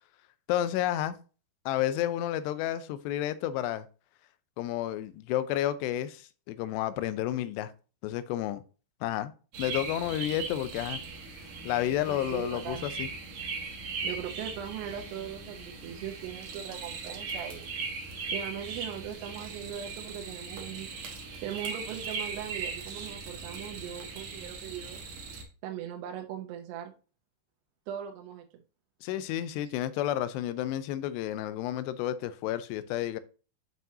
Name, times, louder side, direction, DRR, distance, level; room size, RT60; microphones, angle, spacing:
voice 1, 0.5-1.1 1.7-3.9 4.6-7.7 8.0-8.6 9.0-9.3 9.6-11.0 11.6-13.1 29.0-33.2, left 12 dB, 85° left, 2.7 m, -31 dB
sound 1, 9.5-25.4, right 4 dB, 60° right, 2.2 m, -39 dB
voice 2, 12.1-12.9 14.0-17.6 18.3-20.9 21.4-25.1 25.6-26.9 27.9-28.6, right 10 dB, 80° right, 2.8 m, -39 dB
7.5 x 5.7 x 2.7 m
omnidirectional pair, 4.8 m